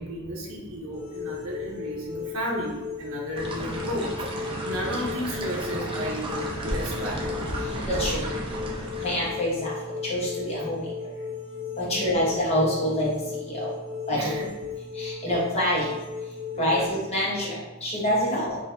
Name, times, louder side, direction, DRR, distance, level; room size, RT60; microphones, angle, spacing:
voice 1, 0.0-7.3 11.8-12.2 14.1-14.5 15.3-15.4 16.5-16.9, equal, 75° right, -4 dB, 0.7 m, -34 dB
sound 1, 0.9-16.8, left 5 dB, 70° left, 0.7 m, -36 dB
sound 2, 3.3-9.4, right 1 dB, 25° right, 0.5 m, -33 dB
voice 2, 7.9-8.2 9.0-9.7 10.1-10.8 11.8-13.1 13.5-13.7 14.1-14.3 15.0-15.9 16.6-18.6, equal, 30° left, -5 dB, 1.0 m, -26 dB
3.9 x 2.6 x 2.6 m, 1.1 s
head